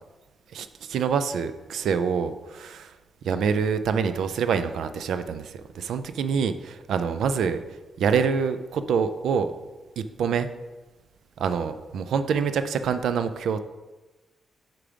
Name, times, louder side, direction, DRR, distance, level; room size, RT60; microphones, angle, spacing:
voice 1, 0.5-2.9 3.2-7.6 8.0-9.5 10.0-10.5 11.4-13.6, right 6 dB, 80° right, 11 dB, 0.4 m, -26 dB
5.9 x 5.0 x 5.0 m, 1.2 s
cardioid pair, 125°, 0 cm